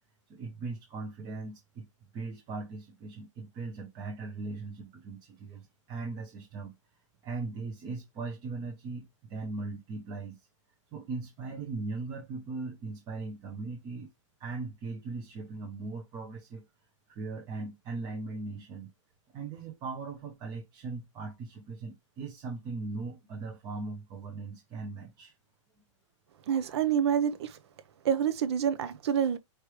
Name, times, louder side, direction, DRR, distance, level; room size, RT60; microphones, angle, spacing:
voice 1, 0.3-1.9 2.1-6.7 7.2-10.4 10.9-14.1 14.4-16.7 17.1-18.9 19.3-25.3, right 3 dB, 20° right, 0.8 m, -39 dB
voice 2, 26.5-27.6 28.0-29.4, right 8 dB, 55° right, 0.8 m, -27 dB
4.7 x 3.3 x 3.2 m
hypercardioid pair, 160°, 16 cm